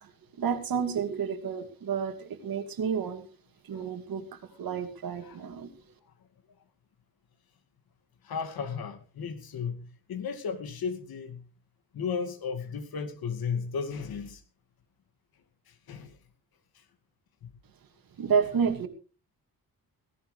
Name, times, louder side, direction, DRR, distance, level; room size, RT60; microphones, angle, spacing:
voice 1, 0.0-3.3 3.6-5.7 18.2-18.9, right 6 dB, 70° right, 7 dB, 2.5 m, -30 dB
voice 2, 8.2-11.4 11.9-14.4 15.7-16.2 16.7-16.8 17.4-17.5, left 6 dB, 75° left, 9 dB, 2.3 m, -35 dB
17.5 x 15.0 x 3.3 m, 0.37 s
wide cardioid pair, 145°, 37 cm